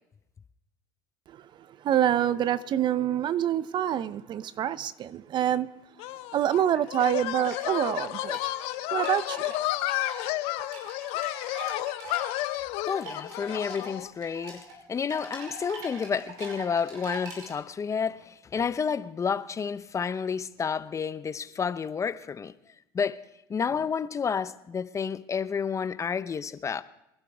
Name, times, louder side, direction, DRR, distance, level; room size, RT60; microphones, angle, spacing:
voice 1, 1.8-5.7 6.3-8.4 8.9-9.5, right 10 dB, 45° right, 0.6 m, -26 dB
sound 1, 6.0-14.1, left 17 dB, 65° left, 0.7 m, -32 dB
sound 2, 6.1-17.5, right 2 dB, 75° right, 5.5 m, -43 dB
voice 2, 12.9-14.6 14.9-22.5 22.9-23.2 23.5-26.8, left 6 dB, 30° left, 0.7 m, -30 dB
25.0 x 11.5 x 3.5 m
hypercardioid pair, 80°, 11 cm